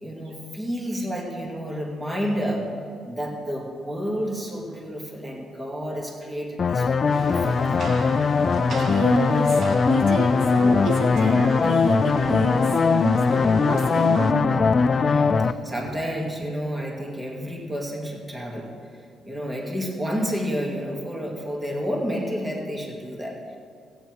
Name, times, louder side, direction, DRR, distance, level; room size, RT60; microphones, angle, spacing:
voice 1, 0.0-2.7 3.0-7.9 15.0-18.7 19.2-23.6, equal, 20° right, -1 dB, 2.1 m, -30 dB
sound 1, 6.6-15.5, left 5 dB, 45° left, 0.4 m, -20 dB
Rain, 7.1-14.3, right 4 dB, 50° right, 0.6 m, -38 dB
voice 2, 8.3-14.6, right 2 dB, 70° right, -1 dB, 2.0 m, -29 dB
14.5 x 9.1 x 4.7 m, 2.2 s
cardioid pair, 90°, 0 cm